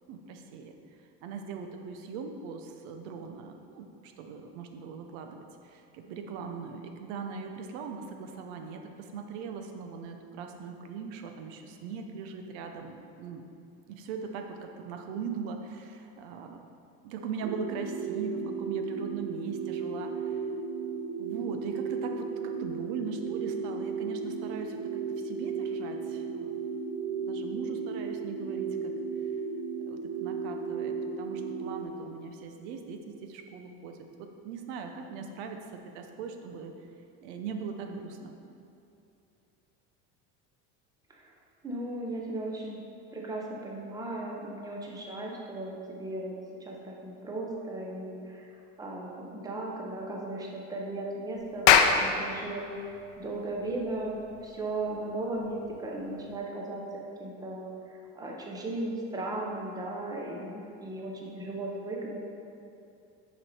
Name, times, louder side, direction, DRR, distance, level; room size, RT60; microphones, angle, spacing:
voice 1, 0.1-0.7 1.2-13.5 13.9-16.6 17.0-20.4 21.2-24.8 25.2-26.6 27.1-28.9 29.9-36.9 37.2-38.3, right 5 dB, 90° right, 5 dB, 0.7 m, -40 dB
sound 1, 17.4-31.8, right 5 dB, 45° right, 0.5 m, -35 dB
voice 2, 41.6-42.8 43.1-46.3 46.6-48.5 48.8-52.8 53.2-62.2, right 2 dB, 10° right, -2 dB, 0.7 m, -36 dB
Clapping, 51.4-56.3, left 7 dB, 75° left, 0.6 m, -26 dB
6.9 x 5.3 x 4.2 m, 2.7 s
cardioid pair, 160°, 32 cm